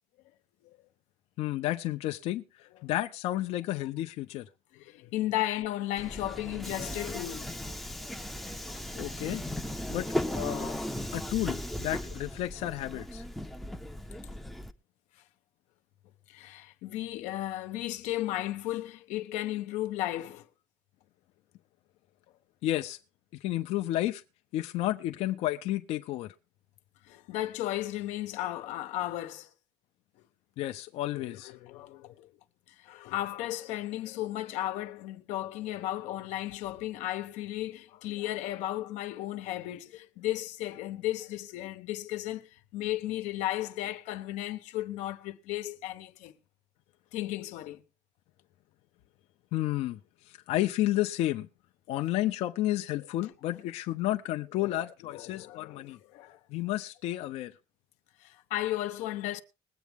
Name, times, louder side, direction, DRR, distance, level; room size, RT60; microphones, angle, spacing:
voice 1, 1.4-2.4 2.8-4.5 8.9-9.4 9.9-10.8 11.1-13.3 22.6-23.0 23.4-24.2 24.5-26.3 30.6-31.5 49.5-50.0 50.2-51.5 51.9-56.0 56.5-57.5, left 15 dB, 60° left, 0.6 m, -31 dB
voice 2, 4.7-7.5 8.7-8.9 16.3-20.5 27.1-29.5 31.1-32.3 32.7-46.3 47.1-47.8 54.6-54.8 55.1-56.4 58.2-59.4, left 14 dB, 90° left, 1.0 m, -35 dB
Subway metro underground, 6.0-14.7, left 1 dB, ahead, 0.5 m, -37 dB
20.5 x 8.3 x 3.5 m
cardioid pair, 175°, 12 cm